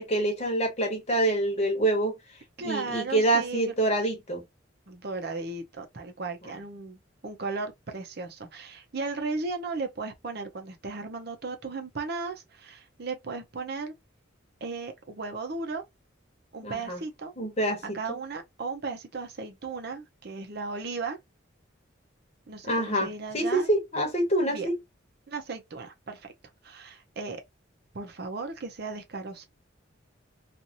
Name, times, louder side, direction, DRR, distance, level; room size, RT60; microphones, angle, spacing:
voice 1, 0.0-2.1 2.6-4.4 16.6-17.0 17.4-17.8 22.7-24.7, right 1 dB, 35° left, 1.0 m, -26 dB
voice 2, 2.6-3.7 4.9-13.9 14.6-15.8 16.5-17.3 17.9-21.2 22.5-23.7 24.4-24.7 25.3-26.3 26.6-27.4 27.9-29.5, right 3 dB, 55° right, 0.7 m, -36 dB
2.7 x 2.5 x 2.8 m
head